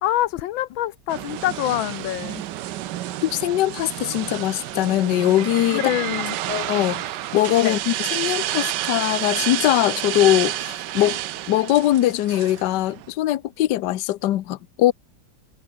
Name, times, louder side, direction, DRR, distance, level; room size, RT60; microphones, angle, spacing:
voice 1, 0.0-2.4 5.7-6.4 7.6-7.8, left 14 dB, 90° left, 1.6 m, -25 dB
sound 1, 1.1-13.1, right 14 dB, 70° right, 1.3 m, -30 dB
voice 2, 3.2-5.8 6.5-7.0 7.3-11.2 11.5-14.9, left 14 dB, 70° left, 1.3 m, -21 dB
omnidirectional pair, 2.1 m